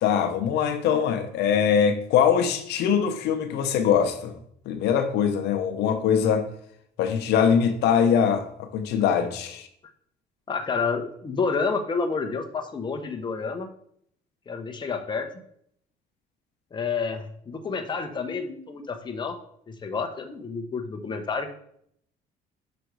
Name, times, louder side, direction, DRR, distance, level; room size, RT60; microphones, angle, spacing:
voice 1, 0.0-4.3 4.7-6.5 7.0-9.7, left 7 dB, 80° left, 0.8 m, -22 dB
voice 2, 10.5-13.7 14.5-15.3 16.7-19.4 19.7-21.5, left 5 dB, 25° left, 0.9 m, -29 dB
6.3 x 5.2 x 4.6 m
cardioid pair, 110°, 17 cm